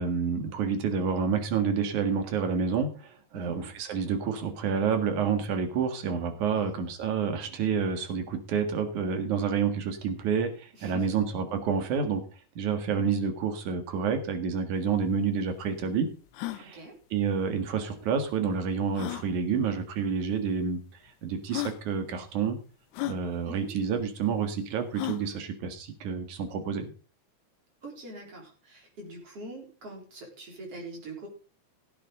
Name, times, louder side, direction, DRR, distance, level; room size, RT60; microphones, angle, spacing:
voice 1, 0.0-12.2 12.6-16.1 16.5-16.8 17.1-20.8 21.2-22.6 23.0-26.9, right 6 dB, 85° right, 7 dB, 3.3 m, -29 dB
voice 2, 10.7-11.1 16.5-17.0 23.4-23.7 27.8-31.3, right 2 dB, 50° right, 0 dB, 4.9 m, -44 dB
sound 1, 14.8-14.9 15.0-15.1 15.7-15.8 16.3-16.6 18.0-18.1 18.9-19.3 20.3-20.4 21.1-21.2 21.5-21.8 22.9-23.2 24.9-25.3, left 16 dB, 80° left, 2.1 m, -34 dB
17.5 x 8.7 x 3.8 m, 0.36 s
omnidirectional pair, 3.4 m